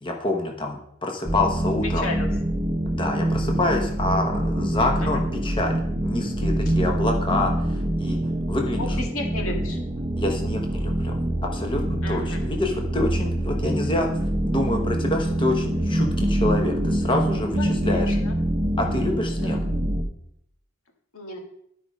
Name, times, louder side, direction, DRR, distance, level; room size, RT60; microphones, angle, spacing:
voice 1, 0.0-2.1 2.9-5.7 6.0-8.2 8.5-9.0 10.2-11.2 11.5-14.1 14.4-18.2 18.8-19.6, left 2 dB, 25° left, 2 dB, 1.0 m, -27 dB
sound 1, 1.3-20.0, right 1 dB, 25° right, 0.8 m, -25 dB
voice 2, 1.9-2.3 5.0-5.2 8.7-9.8 12.0-12.4 17.6-18.3 19.4-19.6 21.1-21.4, left 2 dB, 85° left, 2 dB, 1.9 m, -33 dB
11.5 x 4.9 x 5.3 m, 0.74 s
head